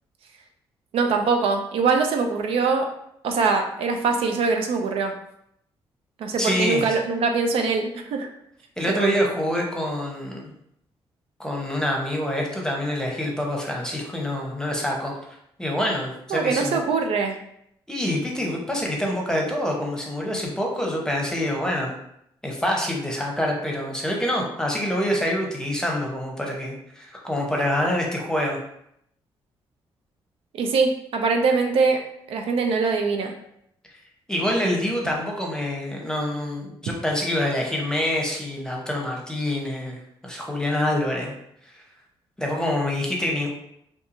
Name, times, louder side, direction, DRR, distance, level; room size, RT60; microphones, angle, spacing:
voice 1, 0.9-2.9 3.2-5.1 6.2-8.3 8.9-9.2 16.3-17.4 30.5-32.0 32.3-33.3, right 4 dB, 70° right, 4 dB, 0.4 m, -23 dB
voice 2, 6.4-7.0 8.8-10.5 11.4-15.1 15.6-17.0 17.9-21.9 22.4-28.6 34.3-41.3 41.7-41.8 42.4-43.5, left 1 dB, 5° left, -1 dB, 0.8 m, -26 dB
2.7 x 2.3 x 2.6 m, 0.75 s
cardioid pair, 65°, 10 cm